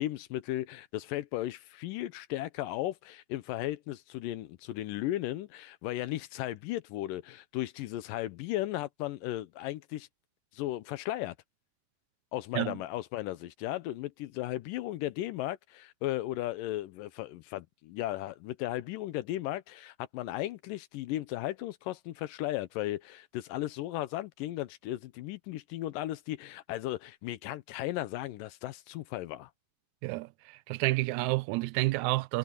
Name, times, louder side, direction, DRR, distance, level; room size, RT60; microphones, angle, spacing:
voice 1, 0.0-10.1 10.5-11.3 12.3-29.5, left 15 dB, 85° left, 2.4 m, -35 dB
voice 2, 30.7-32.4, right 20 dB, 85° right, 1.6 m, -29 dB
omnidirectional pair, 3.9 m